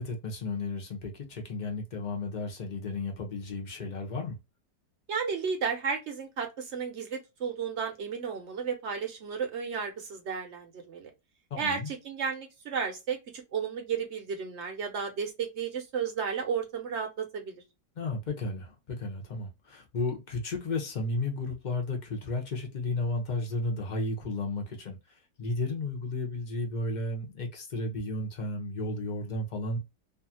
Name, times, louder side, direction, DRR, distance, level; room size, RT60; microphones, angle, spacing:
voice 1, 0.0-4.4 11.5-11.9 18.0-29.8, left 2 dB, 55° left, 0.5 m, -33 dB
voice 2, 5.1-11.1 11.6-17.6, right 6 dB, 55° right, 0.8 m, -33 dB
2.7 x 2.4 x 2.7 m
omnidirectional pair, 1.8 m